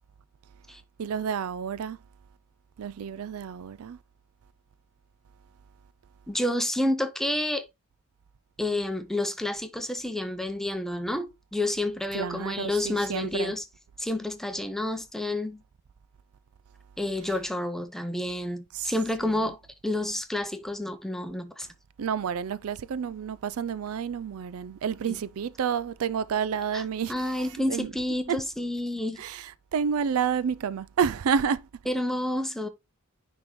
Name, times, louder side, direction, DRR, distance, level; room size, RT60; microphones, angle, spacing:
voice 1, 1.0-2.0 2.8-4.0 12.1-13.5 18.7-18.9 19.2-19.3 22.0-27.9 28.3-28.4 29.2-31.7, right 7 dB, 80° right, 0.4 m, -30 dB
voice 2, 6.3-7.7 8.6-13.6 14.0-15.6 17.0-19.6 19.8-21.7 25.1-25.2 26.7-26.8 27.1-29.2 31.9-32.7, left 1 dB, ahead, 0.7 m, -29 dB
9.8 x 3.6 x 3.1 m
head